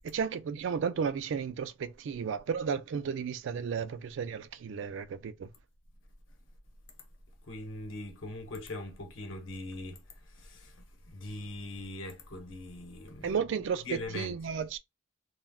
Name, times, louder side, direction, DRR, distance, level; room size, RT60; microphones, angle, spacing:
voice 1, 0.0-5.5 13.2-13.9 14.1-14.8, right 6 dB, 65° right, 0.3 m, -33 dB
voice 2, 7.4-14.4, left 1 dB, 75° left, 0.9 m, -41 dB
2.2 x 2.2 x 3.4 m
head